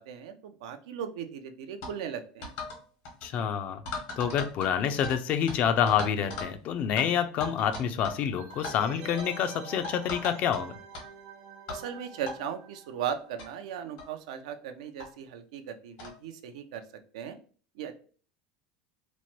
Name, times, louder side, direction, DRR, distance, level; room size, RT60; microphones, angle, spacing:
voice 1, 0.0-2.5 11.7-16.8 17.1-17.4 17.8-17.9, right 8 dB, 85° right, 8 dB, 0.4 m, -37 dB
sound 1, 1.8-2.0 2.4-2.8 3.1-3.3 3.9-5.2 5.5-5.6 5.9-6.5 7.0-7.1 7.4-8.2 8.5-8.7 9.2-9.3 9.8-10.6 10.9-11.0 11.7-11.9 12.3-12.4 13.1-13.2 13.4-13.5 14.0-14.1 15.0-15.1 16.0-16.2, left 3 dB, 75° left, 1.2 m, -38 dB
voice 2, 3.2-3.8 4.2-10.7, left 8 dB, 50° left, 9 dB, 0.4 m, -27 dB
sound 2, 8.4-13.9 14.1-14.2, right 7 dB, 50° right, 0.7 m, -47 dB
3.0 x 2.1 x 2.9 m, 0.41 s
supercardioid pair, 120°, 3 cm